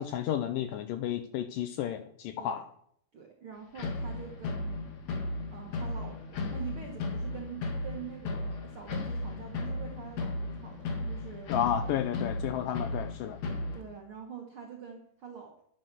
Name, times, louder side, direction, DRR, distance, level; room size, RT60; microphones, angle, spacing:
voice 1, 0.0-2.6 11.5-13.4, left 10 dB, 80° left, 9 dB, 2.1 m, -32 dB
voice 2, 3.1-4.8 5.5-11.7 13.7-15.6, right 7 dB, 65° right, 2 dB, 1.3 m, -45 dB
sound 1, 3.8-13.8, left 2 dB, 50° left, 2.6 m, -35 dB
10.5 x 9.5 x 6.1 m, 0.68 s
omnidirectional pair, 4.5 m